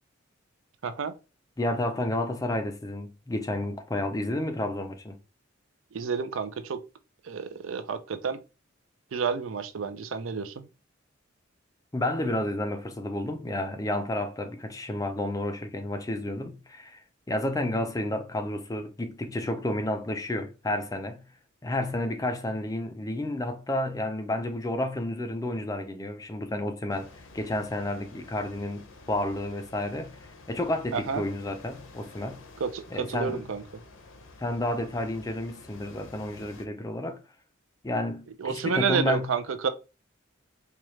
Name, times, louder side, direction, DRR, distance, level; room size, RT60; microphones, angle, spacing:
voice 1, 0.8-1.1 5.9-6.8 7.2-8.4 9.1-10.7 30.9-31.2 32.6-33.6 38.4-39.7, right 6 dB, 85° right, 0.5 m, -30 dB
voice 2, 1.6-5.2 11.9-17.0 17.3-21.2 21.6-32.4 32.9-33.4 34.4-37.2 37.8-39.3, left 1 dB, 15° left, 0.4 m, -31 dB
sound 1, 26.9-36.7, left 3 dB, 80° left, 0.7 m, -50 dB
4.4 x 2.4 x 3.1 m
head